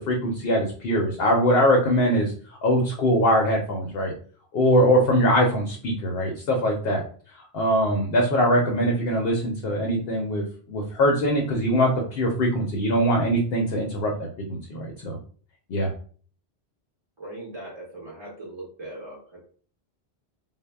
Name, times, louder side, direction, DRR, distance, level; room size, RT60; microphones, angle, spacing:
voice 1, 0.0-2.3 2.6-4.1 4.5-7.0 7.5-15.2 15.7-15.9, equal, 65° left, 1 dB, 0.7 m, -22 dB
voice 2, 17.2-19.4, right 1 dB, 30° right, -5 dB, 0.6 m, -39 dB
2.0 x 2.0 x 3.3 m, 0.44 s
omnidirectional pair, 1.1 m